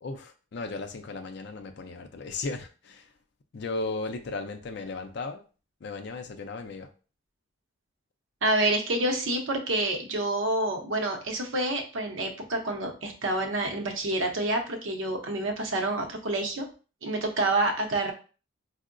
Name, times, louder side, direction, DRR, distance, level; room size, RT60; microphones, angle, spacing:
voice 1, 0.0-3.1 3.5-5.4 5.8-6.9, left 3 dB, 55° left, 7 dB, 0.4 m, -36 dB
voice 2, 8.4-16.7 17.0-18.1, right 2 dB, 70° right, 3 dB, 0.6 m, -28 dB
4.4 x 2.0 x 2.5 m, 0.35 s
head